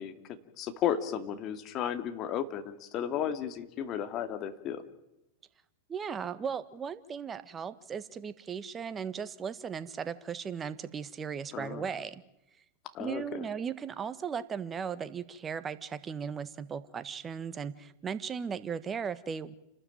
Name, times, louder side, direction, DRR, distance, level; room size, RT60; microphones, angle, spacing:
voice 1, 0.0-4.8 11.5-11.9 12.9-13.4, left 9 dB, 40° left, 9 dB, 2.5 m, -34 dB
voice 2, 5.9-12.2 13.0-19.5, right 7 dB, 25° right, 14 dB, 1.5 m, -37 dB
29.5 x 13.0 x 9.2 m, 0.91 s
hypercardioid pair, 100°, 0 cm